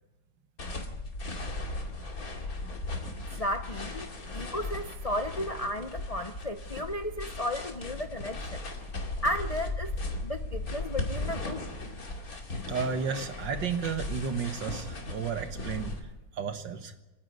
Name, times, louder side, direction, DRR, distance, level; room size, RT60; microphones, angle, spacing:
sound 1, 0.6-16.0, left 2 dB, 55° left, 2.9 m, -37 dB
voice 1, 3.4-4.1 4.3-8.6 9.2-9.9 10.2-11.7, left 1 dB, 70° left, 8 dB, 0.3 m, -34 dB
voice 2, 12.7-16.9, right 6 dB, 80° right, 8 dB, 2.1 m, -33 dB
28.0 x 9.9 x 9.4 m, 1.1 s
omnidirectional pair, 1.9 m